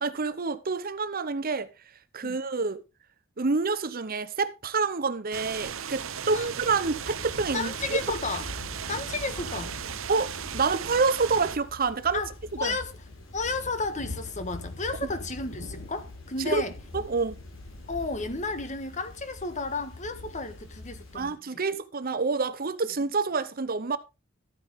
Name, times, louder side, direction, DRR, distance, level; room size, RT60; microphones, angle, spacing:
voice 1, 0.0-1.7 2.1-2.8 3.4-8.0 10.1-12.2 12.6-12.8 16.4-16.6 16.9-17.4 21.1-24.0, right 4 dB, 45° right, 0.8 m, -27 dB
sound 1, 5.3-11.6, right 8 dB, 75° right, 0.9 m, -36 dB
Thunder / Rain, 6.9-21.3, left 2 dB, 75° left, 4.6 m, -43 dB
voice 2, 7.5-8.4 8.9-9.8 12.1-12.3 12.6-12.9 13.3-16.7 17.9-21.4, left 3 dB, 35° left, 1.5 m, -32 dB
13.0 x 9.2 x 3.6 m
head